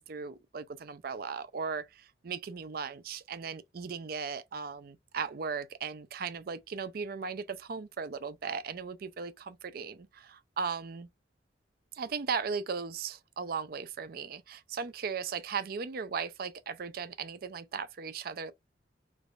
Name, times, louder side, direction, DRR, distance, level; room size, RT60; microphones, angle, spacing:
voice 1, 0.0-11.1 11.9-18.5, right 5 dB, 55° right, 0.4 m, -37 dB
3.4 x 3.1 x 2.4 m
head